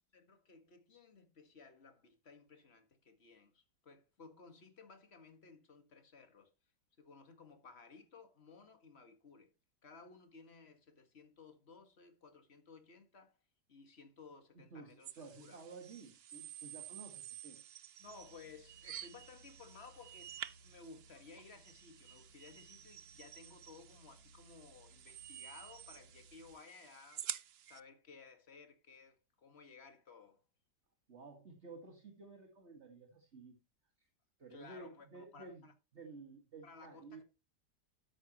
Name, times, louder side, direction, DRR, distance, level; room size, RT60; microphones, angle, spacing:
voice 1, 0.1-6.5 7.0-9.5 9.8-13.4 13.7-15.6 18.0-20.3 20.6-27.3 27.6-30.4 34.5-35.7 36.6-37.2, left 4 dB, 35° left, 1.9 m, -58 dB
voice 2, 14.7-17.6 31.1-33.6 34.0-34.1 34.4-35.7 35.9-37.2, right 4 dB, 40° right, 2.1 m, -53 dB
sound 1, 15.0-27.8, right 10 dB, 80° right, 0.5 m, -50 dB
sound 2, 18.0-26.5, right 1 dB, 55° right, 4.6 m, -64 dB
13.0 x 10.0 x 3.0 m
omnidirectional pair, 1.9 m